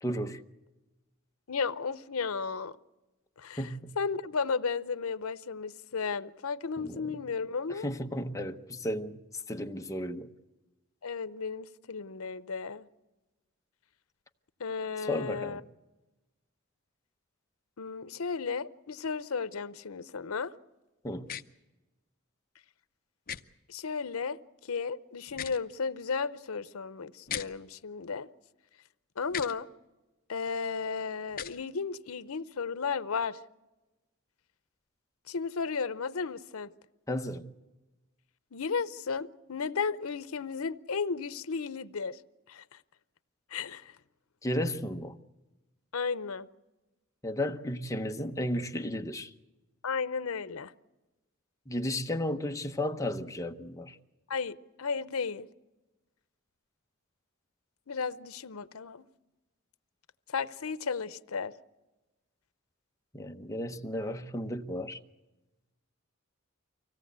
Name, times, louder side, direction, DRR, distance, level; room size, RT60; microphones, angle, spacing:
voice 1, 0.0-0.4 3.6-3.9 6.8-7.2 7.7-9.2 9.5-10.3 15.0-15.6 21.0-21.3 37.1-37.5 44.4-45.2 47.2-49.3 51.7-54.0 63.1-65.0, left 1 dB, 15° left, 0.9 m, -34 dB
voice 2, 1.5-2.8 3.4-7.9 11.0-12.9 14.6-15.6 17.8-20.5 23.7-28.3 29.2-29.7 30.3-33.4 35.3-36.7 38.5-42.2 42.5-42.6 43.5-43.9 45.9-46.5 49.8-50.7 54.3-55.5 57.9-59.0 60.3-61.5, left 5 dB, 85° left, 0.7 m, -34 dB
sound 1, 21.3-21.4 23.3-23.4 25.3-25.6 27.3-27.5 29.3-29.5 31.3-31.6, left 9 dB, 45° left, 0.7 m, -37 dB
25.0 x 17.0 x 8.1 m
head